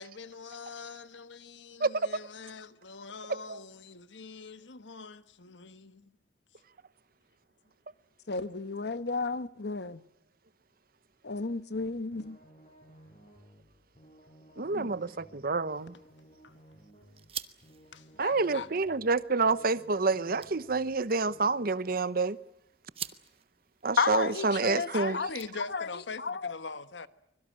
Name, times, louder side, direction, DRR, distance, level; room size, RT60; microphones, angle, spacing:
voice 1, 0.0-6.1 16.4-16.5 17.9-18.7 24.9-27.1, left 4 dB, 85° left, 1.4 m, -43 dB
voice 2, 3.3-3.6 14.6-15.9 18.2-22.4 23.8-25.2, right 3 dB, 55° right, 0.9 m, -28 dB
voice 3, 8.3-10.0 11.2-12.4 14.7-14.9 24.0-25.3 25.7-26.5, left 4 dB, 65° left, 1.1 m, -32 dB
sound 1, 11.7-21.7, right 1 dB, 35° left, 6.6 m, -58 dB
sound 2, 15.7-26.0, right 9 dB, 35° right, 1.1 m, -49 dB
24.5 x 22.5 x 8.8 m
head